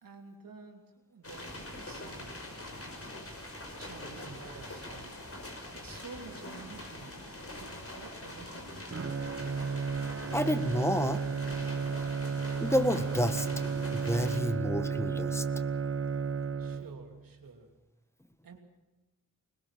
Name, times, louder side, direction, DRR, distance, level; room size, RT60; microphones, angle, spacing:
voice 1, 0.0-2.4 3.8-5.1 5.4-7.3 7.5-8.9 16.6-17.7 18.4-18.6, right 4 dB, 90° right, 3 dB, 3.0 m, -50 dB
sound 1, 1.2-14.4, left 1 dB, 45° left, 5.6 m, -44 dB
Bowed string instrument, 8.9-17.2, right 5 dB, 40° right, 0.9 m, -33 dB
voice 2, 10.3-11.2 12.6-13.5 13.9-15.4, equal, 10° left, 10 dB, 1.6 m, -29 dB
21.0 x 20.0 x 7.5 m, 1.1 s
cardioid pair, 45°, 33 cm